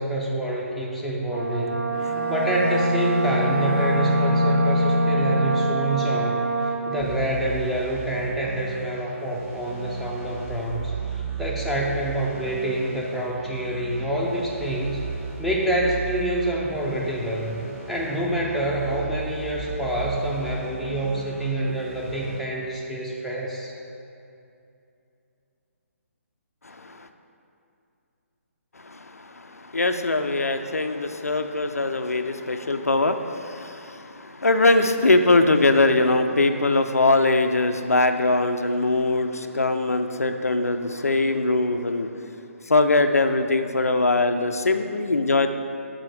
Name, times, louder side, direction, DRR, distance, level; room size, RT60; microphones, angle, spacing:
voice 1, 0.0-1.9 2.3-15.0 15.4-17.6 17.9-23.7, right 1 dB, ahead, -5 dB, 0.6 m, -27 dB
Brass instrument, 1.3-7.1, right 4 dB, 75° right, 0.7 m, -27 dB
Bowed string instrument, 1.9-5.7, left 2 dB, 40° right, 1.1 m, -24 dB
sound 1, 7.0-22.4, right 6 dB, 20° right, 1.3 m, -36 dB
voice 2, 26.6-27.1 28.8-42.2 42.7-45.5, left 2 dB, 80° left, 7 dB, 0.4 m, -22 dB
6.3 x 4.2 x 4.7 m, 2.7 s
figure-of-eight pair, 140°, 8 cm